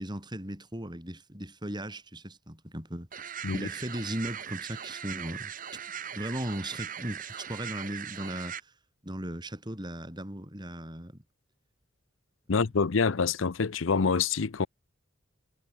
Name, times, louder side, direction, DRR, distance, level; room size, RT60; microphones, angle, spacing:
voice 1, 0.0-5.5 6.1-8.7 9.0-11.2, right 1 dB, 20° right, 7.0 m, -37 dB
sound 1, 3.1-8.6, right 8 dB, 45° right, 2.1 m, -40 dB
voice 2, 12.5-14.7, left 5 dB, 85° left, 0.7 m, -26 dB
head